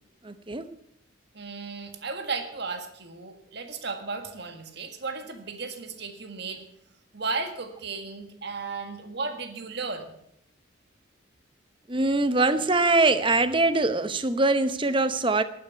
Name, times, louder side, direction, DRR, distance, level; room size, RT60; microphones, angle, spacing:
voice 1, 0.2-0.7 11.9-15.4, right 2 dB, 25° right, 11 dB, 0.8 m, -23 dB
voice 2, 1.3-6.6 7.1-10.1, right 4 dB, 55° right, 6 dB, 1.8 m, -35 dB
11.5 x 10.0 x 8.1 m, 0.74 s
head